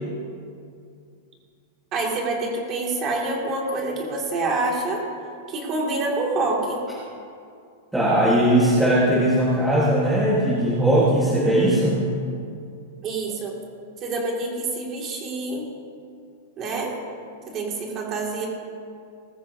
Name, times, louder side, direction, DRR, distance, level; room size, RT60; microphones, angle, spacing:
voice 1, 1.9-5.0 5.5-6.8 13.0-13.5 14.0-15.6 16.6-16.9 17.5-18.5, right 2 dB, 20° right, -1 dB, 2.2 m, -26 dB
voice 2, 7.9-12.0, right 1 dB, 5° right, -7 dB, 1.3 m, -19 dB
19.5 x 14.5 x 2.7 m, 2.4 s
supercardioid pair, 180°, 0 cm